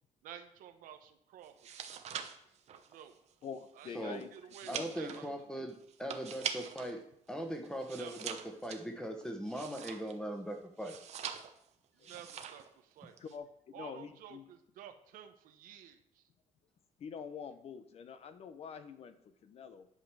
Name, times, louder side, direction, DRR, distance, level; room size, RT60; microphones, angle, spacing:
voice 1, 0.2-1.7 2.9-3.2 3.8-5.3 8.0-8.3 11.9-13.2 13.7-16.2, right 10 dB, 90° right, 6 dB, 1.2 m, -52 dB
sound 1, 1.5-7.0 7.3-10.3 10.8-11.7 12.0-12.7 13.0-13.4, right 8 dB, 55° right, 1.0 m, -44 dB
voice 2, 3.4-4.3 4.6-5.1 12.0-12.2 13.2-14.4 17.0-19.9, left 6 dB, 45° left, 10 dB, 0.9 m, -46 dB
voice 3, 4.7-7.0 7.3-8.4 8.6-11.0, equal, 5° left, 4 dB, 1.4 m, -40 dB
11.0 x 5.3 x 6.3 m, 0.70 s
cardioid pair, 150°, 14 cm